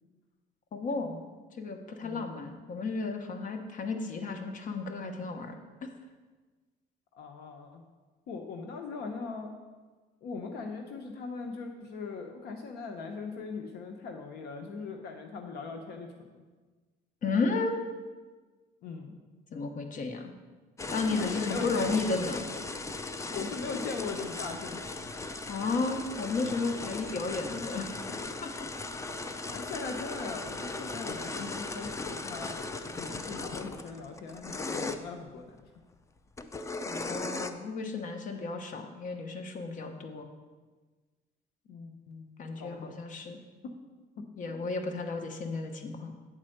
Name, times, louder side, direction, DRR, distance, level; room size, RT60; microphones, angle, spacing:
voice 1, 0.7-1.3 1.6-5.6 5.8-5.9 17.2-17.8 19.5-20.3 20.9-22.5 23.0-23.1 25.5-27.9 28.4-28.5 36.9-40.3 42.4-43.4 44.4-46.1, left 3 dB, 50° left, 5 dB, 1.0 m, -33 dB
voice 2, 7.1-7.8 8.3-9.5 10.2-16.4 18.8-19.2 21.1-21.9 23.3-25.0 29.4-32.5 32.9-35.6 41.7-43.0 43.6-43.7 44.2-44.6, left 4 dB, 75° left, 4 dB, 0.8 m, -40 dB
sound 1, 20.8-35.0 36.4-37.5, left 3 dB, 20° left, 0.4 m, -37 dB
8.9 x 4.3 x 6.5 m, 1.3 s
cardioid pair, 110°, 17 cm